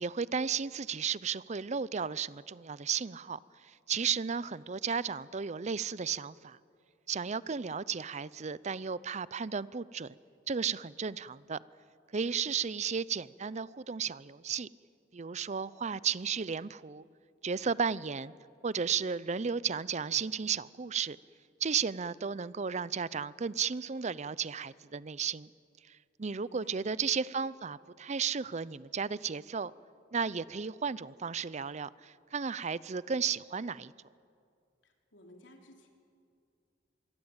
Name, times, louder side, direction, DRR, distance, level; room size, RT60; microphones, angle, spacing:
voice 1, 0.0-6.6 7.1-10.1 10.5-11.6 12.1-14.7 15.1-17.0 17.4-18.3 18.6-21.2 21.6-25.5 25.9-29.7 30.1-33.9, right 6 dB, 40° right, 19 dB, 0.5 m, -34 dB
voice 2, 26.4-26.8 34.8-35.9, left 1 dB, 75° left, 2 dB, 3.7 m, -57 dB
25.5 x 22.5 x 8.9 m, 2.3 s
head